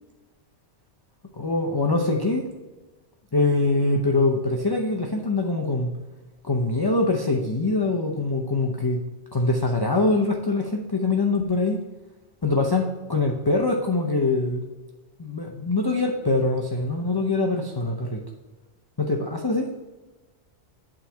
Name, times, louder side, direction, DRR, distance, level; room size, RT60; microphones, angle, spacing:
voice 1, 1.3-2.5 3.3-5.9 6.4-9.0 9.3-11.8 12.4-14.6 15.2-18.2 19.0-19.7, left 2 dB, 25° left, 0 dB, 0.6 m, -23 dB
8.7 x 3.8 x 5.6 m, 1.2 s
omnidirectional pair, 1.2 m